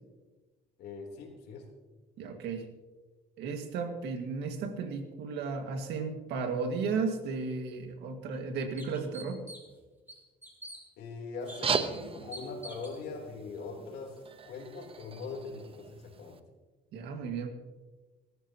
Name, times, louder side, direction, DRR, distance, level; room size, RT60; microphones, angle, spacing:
voice 1, 0.8-1.7 11.0-14.2 14.5-16.4, left 4 dB, 80° left, 1 dB, 3.6 m, -41 dB
voice 2, 2.2-2.7 3.4-9.4 16.9-17.5, right 4 dB, 85° right, 5 dB, 2.1 m, -34 dB
sound 1, 7.7-7.8 8.3-8.4 8.8-9.8 10.1-10.8 11.5-11.6 12.3-13.0, right 1 dB, 10° right, 3.8 m, -46 dB
sound 2, 11.4-16.4, right 6 dB, 35° right, 1.0 m, -37 dB
21.5 x 13.5 x 3.0 m, 1.2 s
cardioid pair, 110°, 17 cm